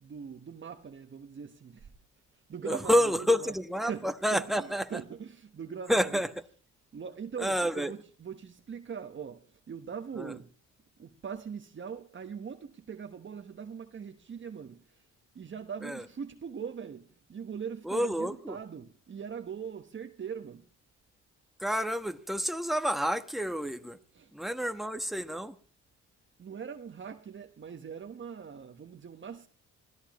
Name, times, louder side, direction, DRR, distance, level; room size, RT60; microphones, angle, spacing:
voice 1, 0.0-1.9 2.3-3.5 3.9-6.3 6.9-10.5 11.0-15.1 15.3-20.6 24.1-24.3 26.4-29.5, right 7 dB, 40° right, 1.3 m, -41 dB
voice 2, 2.6-5.0 5.9-6.3 7.4-7.9 10.2-10.3 15.8-16.0 17.8-18.6 21.6-24.0 24.3-25.6, equal, ahead, 1.4 m, -29 dB
25.0 x 16.5 x 3.1 m
cardioid pair, 90°, 30 cm